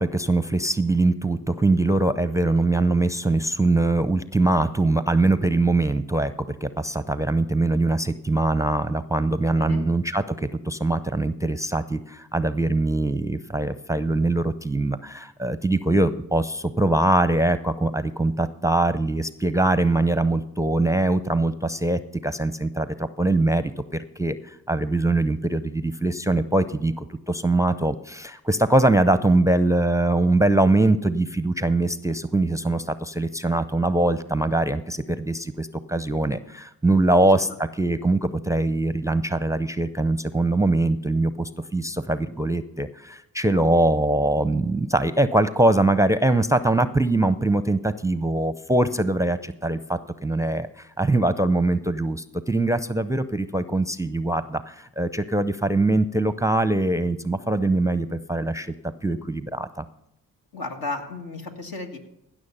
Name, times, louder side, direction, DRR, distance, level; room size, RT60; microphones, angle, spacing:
voice 1, 0.0-58.7 59.0-59.8, right 2 dB, 10° right, 13 dB, 0.6 m, -22 dB
voice 2, 60.5-62.0, left 3 dB, 70° left, 2 dB, 1.7 m, -33 dB
16.0 x 6.3 x 5.5 m, 0.82 s
supercardioid pair, 40°, 38 cm